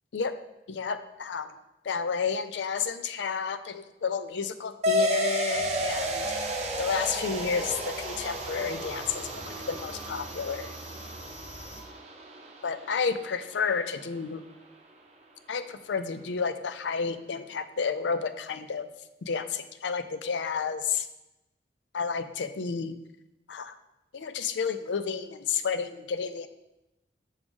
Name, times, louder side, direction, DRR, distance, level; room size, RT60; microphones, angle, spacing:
voice 1, 0.7-1.5 1.8-10.8 12.6-14.4 15.5-18.9 19.2-21.1 21.9-22.9 23.5-23.7 24.1-26.5, left 5 dB, 85° left, 11 dB, 0.5 m, -31 dB
sound 1, 4.8-13.9, equal, 40° right, 0.7 m, -33 dB
sound 2, 5.5-11.8, right 1 dB, 15° right, 2.0 m, -44 dB
6.3 x 5.1 x 3.6 m, 0.94 s
head